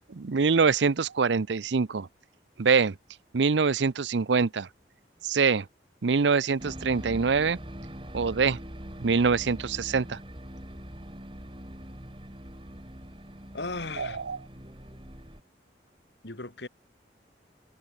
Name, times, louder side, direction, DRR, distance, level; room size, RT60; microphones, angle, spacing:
voice 1, 0.2-2.1 2.6-3.0 3.3-4.7 5.2-5.7 6.0-7.6 8.1-8.6 9.0-10.2 14.0-14.4, right 5 dB, 80° right, 0.6 m, -24 dB
sound 1, 6.6-15.4, equal, 30° right, 5.0 m, -43 dB
voice 2, 13.5-14.2 16.2-16.7, left 3 dB, 75° left, 2.5 m, -36 dB
head